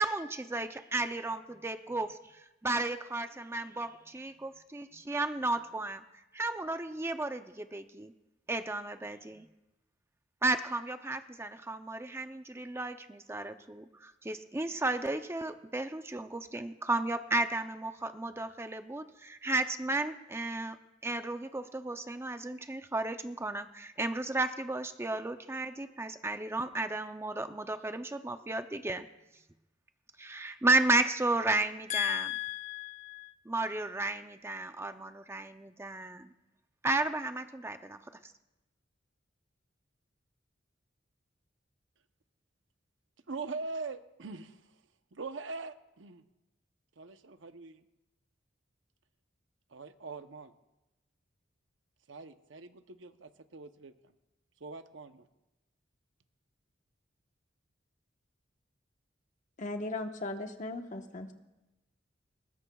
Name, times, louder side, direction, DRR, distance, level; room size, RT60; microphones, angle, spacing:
voice 1, 0.0-6.0 6.3-8.1 8.5-9.4 10.4-20.8 21.0-29.1 30.2-32.3 33.5-36.3 36.8-38.0, right 2 dB, 15° right, 8 dB, 0.5 m, -33 dB
voice 2, 31.9-33.3 59.6-61.3, left 7 dB, 40° left, 5 dB, 1.1 m, -36 dB
voice 3, 43.3-44.6 45.1-46.2 47.0-47.8 49.7-50.5 52.1-53.9 54.6-55.3, right 3 dB, 80° right, 9 dB, 0.8 m, -42 dB
21.0 x 20.0 x 2.3 m, 0.98 s
head